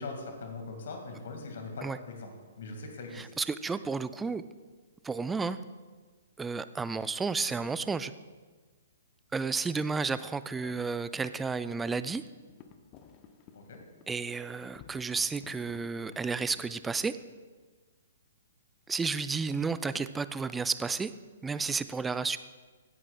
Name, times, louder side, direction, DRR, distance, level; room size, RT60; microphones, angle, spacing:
voice 1, 0.0-3.3 10.6-10.7 13.5-13.8, left 3 dB, 55° left, 4 dB, 1.9 m, -41 dB
voice 2, 3.1-4.4 5.0-5.6 6.4-8.1 9.3-12.2 14.1-17.2 18.9-21.1 21.4-22.4, right 4 dB, 10° right, 14 dB, 0.3 m, -32 dB
sound 1, 12.3-17.1, left 7 dB, 30° left, 0.7 m, -55 dB
16.5 x 9.6 x 2.3 m, 1.4 s
figure-of-eight pair, 120°, 0 cm